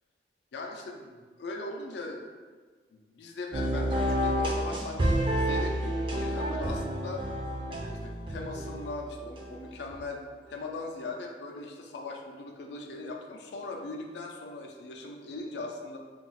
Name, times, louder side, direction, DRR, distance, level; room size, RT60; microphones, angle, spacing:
voice 1, 0.5-2.2 2.9-7.3 8.0-10.2 10.5-16.0, left 2 dB, 70° left, 2 dB, 0.4 m, -39 dB
sound 1, 3.5-10.0, equal, 30° right, 0.3 m, -30 dB
2.4 x 2.0 x 3.8 m, 1.5 s
head